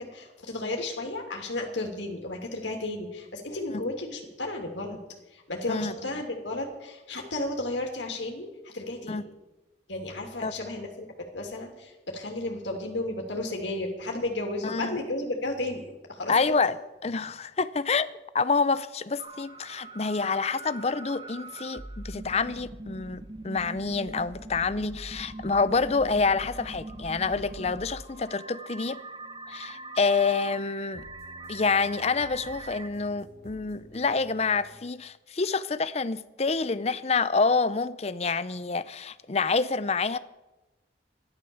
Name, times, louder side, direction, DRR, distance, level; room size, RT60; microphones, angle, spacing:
voice 1, 0.0-5.0 5.3-9.3 9.9-16.6, left 2 dB, 85° left, 2.9 m, -33 dB
voice 2, 14.6-15.0 16.3-16.8 17.0-18.1 18.3-29.0 29.5-31.0 31.5-40.2, left 4 dB, 35° left, 0.6 m, -27 dB
sound 1, 19.2-32.9, right 2 dB, 25° right, 1.2 m, -42 dB
sound 2, 28.1-34.8, equal, 65° right, 4.7 m, -53 dB
14.0 x 12.0 x 7.1 m
head